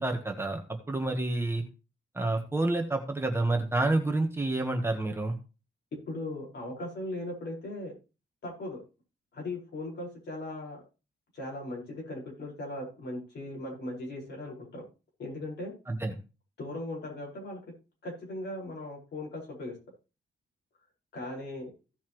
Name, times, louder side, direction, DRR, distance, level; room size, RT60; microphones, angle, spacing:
voice 1, 0.0-1.6 2.1-5.3 15.9-16.1, right 2 dB, 10° right, 3 dB, 1.3 m, -29 dB
voice 2, 6.1-7.9 8.4-8.8 9.3-10.8 11.3-14.8 15.2-15.7 16.6-17.6 18.0-19.7 21.1-21.7, left 1 dB, 60° left, -2 dB, 5.1 m, -38 dB
16.0 x 5.6 x 3.1 m, 0.31 s
wide cardioid pair, 140°, 20 cm